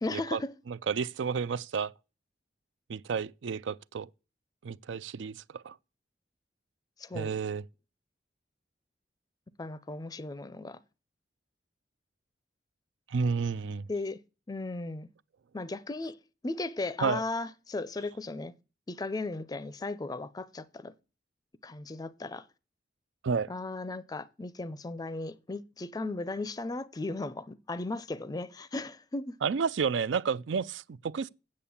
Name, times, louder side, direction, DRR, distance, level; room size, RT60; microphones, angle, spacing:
voice 1, 0.0-0.5 7.0-7.3 9.6-10.8 13.9-14.2 14.5-15.1 15.5-16.2 16.4-18.5 18.9-20.9 21.6-22.4 23.5-29.3, left 2 dB, 20° left, 0.4 m, -36 dB
voice 2, 0.7-1.9 2.9-4.1 4.6-5.8 7.1-7.6 13.1-13.9 17.0-17.2 23.2-23.5 29.4-31.3, right 5 dB, 90° right, 0.4 m, -31 dB
8.6 x 6.6 x 7.1 m
head